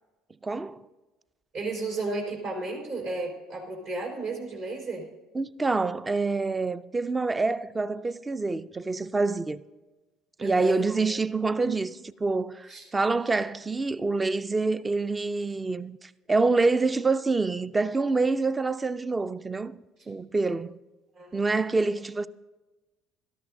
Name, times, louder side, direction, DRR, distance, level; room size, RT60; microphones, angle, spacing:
voice 1, 0.4-0.8 5.3-9.6 10.4-11.9 12.2-19.8 20.1-20.8 21.3-22.3, right 3 dB, 20° right, 0.5 m, -26 dB
voice 2, 1.5-5.1 10.4-10.9 11.6-11.8 12.7-12.8 21.1-21.4, right 3 dB, 65° right, 4.4 m, -33 dB
17.5 x 13.0 x 2.7 m
hypercardioid pair, 65°, 0 cm